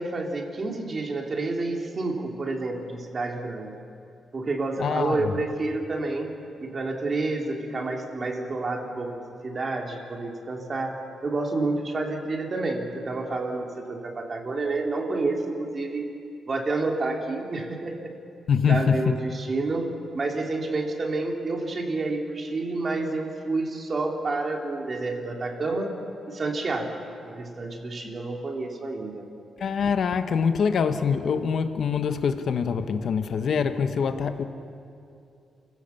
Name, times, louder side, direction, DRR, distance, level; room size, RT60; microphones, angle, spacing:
voice 1, 0.0-3.8 4.3-6.3 6.6-11.0 11.2-16.0 16.5-18.1 18.7-19.9 20.1-25.9 26.3-27.0 27.2-29.3, right 3 dB, 35° right, 2 dB, 2.8 m, -29 dB
voice 2, 4.8-5.3 18.5-19.2 29.6-34.4, left 6 dB, 60° left, 9 dB, 1.1 m, -24 dB
28.5 x 16.0 x 7.1 m, 2.6 s
cardioid pair, 115°, 0 cm